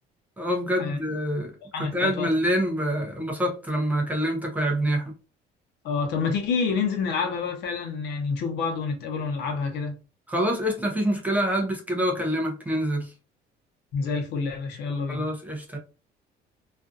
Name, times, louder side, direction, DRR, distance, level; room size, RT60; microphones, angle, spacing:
voice 1, 0.4-1.5 1.8-5.1 10.3-13.1 15.1-15.8, equal, 10° right, 0.5 m, -26 dB
voice 2, 1.7-2.3 5.8-10.0 13.9-15.3, left 5 dB, 75° left, 0.8 m, -28 dB
2.5 x 2.4 x 2.4 m
cardioid pair, 160°, 18 cm